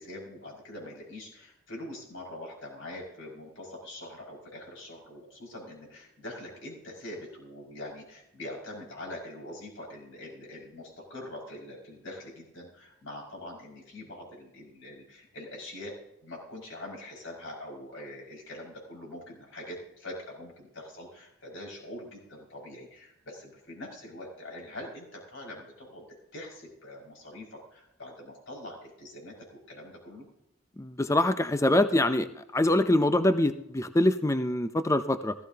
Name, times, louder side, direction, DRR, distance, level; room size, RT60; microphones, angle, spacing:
voice 1, 0.0-16.0 16.2-26.0 26.3-30.3, left 1 dB, 65° left, -2 dB, 5.7 m, -43 dB
voice 2, 30.8-32.3 32.5-35.3, left 1 dB, 15° left, 10 dB, 0.5 m, -24 dB
17.0 x 15.0 x 2.9 m, 0.82 s
head